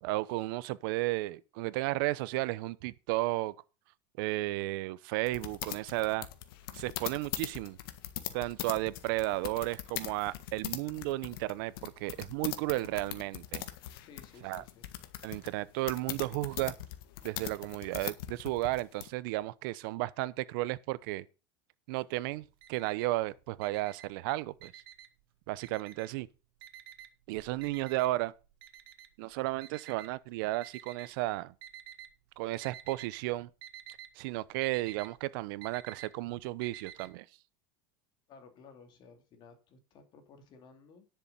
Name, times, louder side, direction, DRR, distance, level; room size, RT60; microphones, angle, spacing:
voice 1, 0.0-3.5 4.2-6.3 6.7-7.8 8.3-13.6 14.4-14.6 15.2-16.7 17.2-21.3 21.9-24.7 25.5-26.3 27.3-28.3 29.2-31.5 32.4-33.5 34.2-37.2, right 19 dB, 65° right, 0.8 m, -33 dB
sound 1, 5.3-19.1, left 13 dB, 75° left, 1.6 m, -41 dB
voice 2, 14.0-14.9 27.5-27.6 38.3-41.1, left 5 dB, 40° left, 3.0 m, -56 dB
Alarm, 22.3-23.2 23.6-25.2 25.6-26.3 26.6-31.1 31.6-32.2 32.5-33.1 33.4-37.1, right 10 dB, 90° right, 1.6 m, -49 dB
10.5 x 6.9 x 5.6 m
supercardioid pair, 145°, 12 cm